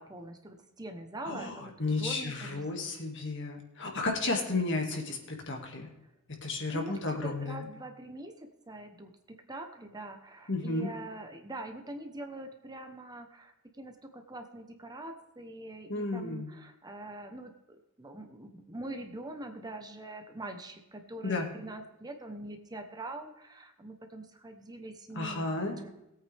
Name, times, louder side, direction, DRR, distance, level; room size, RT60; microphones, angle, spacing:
voice 1, 0.0-1.6 1.9-3.0 4.0-4.2 6.7-9.1 9.5-25.9, right 1 dB, 20° right, 5 dB, 1.0 m, -44 dB
voice 2, 1.2-5.9 6.4-7.7 10.5-10.9 15.9-16.5 21.2-21.5 25.1-25.8, left 3 dB, 60° left, 2 dB, 2.2 m, -33 dB
19.0 x 8.5 x 3.5 m, 0.89 s
head